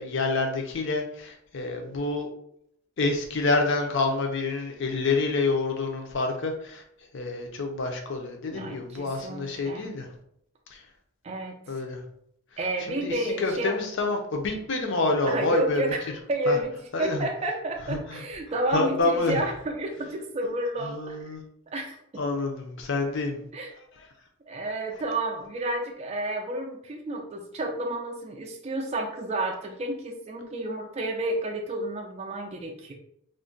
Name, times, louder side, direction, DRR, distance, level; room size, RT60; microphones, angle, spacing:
voice 1, 0.0-2.3 3.0-6.8 7.1-10.1 10.7-10.8 11.7-12.0 12.9-15.8 16.5-16.6 16.9-17.3 17.9-18.2 18.7-19.4 20.8-21.4 22.2-23.5, left 3 dB, 55° left, 3 dB, 0.5 m, -27 dB
voice 2, 8.5-9.9 11.2-11.8 12.6-13.8 15.3-21.3 21.7-22.2 23.5-23.7 24.5-32.9, right 1 dB, 30° right, 2 dB, 0.3 m, -31 dB
2.4 x 2.1 x 3.7 m, 0.71 s
head